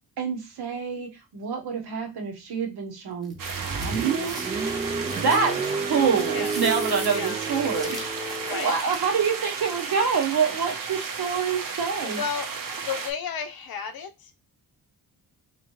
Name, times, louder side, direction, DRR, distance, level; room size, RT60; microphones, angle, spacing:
voice 1, 0.2-3.3 3.6-4.4 5.1-5.5 5.9-12.2, right 6 dB, 70° right, 3 dB, 1.0 m, -26 dB
sound 1, 3.2-9.1, equal, ahead, 1.2 m, -42 dB
Car, 3.3-8.8, right 4 dB, 20° right, 0.3 m, -31 dB
sound 2, 3.4-13.1, right 5 dB, 55° right, 0.8 m, -34 dB
voice 2, 8.4-8.7 9.4-9.5 12.0-14.3, left 7 dB, 65° left, 8 dB, 0.7 m, -33 dB
3.4 x 3.0 x 3.0 m, 0.24 s
cardioid pair, 110°, 39 cm